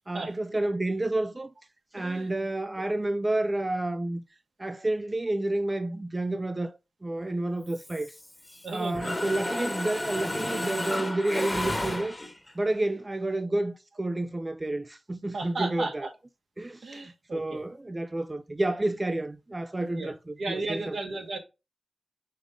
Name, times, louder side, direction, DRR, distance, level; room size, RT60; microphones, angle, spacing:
voice 1, 0.1-1.5 1.9-4.2 4.6-8.2 8.7-12.2 12.6-16.1 16.6-21.0, right 2 dB, 30° right, 0.5 m, -30 dB
voice 2, 2.0-2.3 2.8-2.9 8.6-9.1 15.3-16.1 16.8-17.6 19.9-20.1 20.4-21.4, right 3 dB, 75° right, 1.6 m, -34 dB
Mechanisms, 7.7-8.6 8.9-12.5, left 1 dB, 20° left, 1.3 m, -32 dB
5.4 x 3.7 x 5.0 m
cardioid pair, 50°, 0 cm